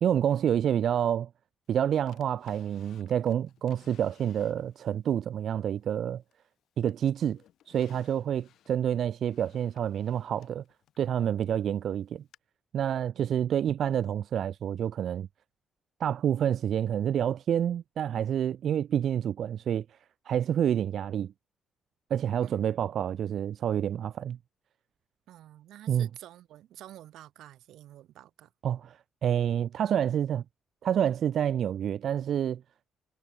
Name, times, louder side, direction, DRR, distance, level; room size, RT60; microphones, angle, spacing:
voice 1, 0.0-1.3 1.7-6.2 6.8-7.4 7.7-10.6 11.0-12.2 12.7-15.3 16.0-19.8 20.3-21.3 22.1-24.4 25.9-26.1 28.6-30.4 30.8-32.6, right 9 dB, 55° right, 0.6 m, -28 dB
Drawer open or close, 2.1-5.0 5.5-6.5 6.9-11.6 12.3-12.4, left 11 dB, 70° left, 7.0 m, -61 dB
voice 2, 22.4-23.1 25.3-28.5, right 13 dB, 85° right, 7.7 m, -50 dB
cardioid pair, 150°, 0 cm